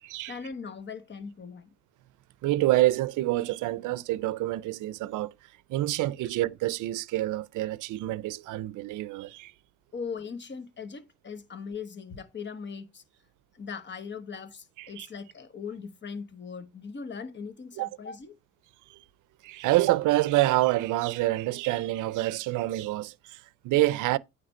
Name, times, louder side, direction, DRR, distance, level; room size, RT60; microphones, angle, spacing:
voice 1, 0.3-1.7 9.9-13.0 13.5-18.3, left 5 dB, 35° left, 1.1 m, -39 dB
voice 2, 2.4-5.3 5.7-9.5 14.8-15.1 17.8-17.9 18.9-19.0 19.4-24.2, right 17 dB, 85° right, 0.5 m, -27 dB
9.4 x 3.3 x 5.4 m
cardioid pair, 90°, 30 cm